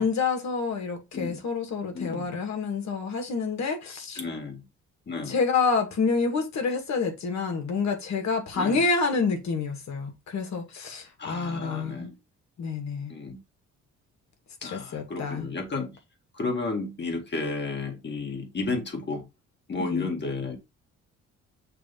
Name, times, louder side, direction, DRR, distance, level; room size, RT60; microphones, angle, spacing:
voice 1, 0.0-4.2 5.3-12.1 12.6-13.1 14.6-15.5 19.8-20.1, left 4 dB, 65° left, 2.0 m, -28 dB
voice 2, 1.9-2.3 4.2-4.7 5.1-5.4 8.5-8.8 11.2-12.1 13.1-13.4 14.6-16.0 16.3-19.2 19.7-20.6, left 3 dB, 35° left, 1.9 m, -32 dB
6.8 x 2.8 x 5.1 m
cardioid pair, 90°, 30 cm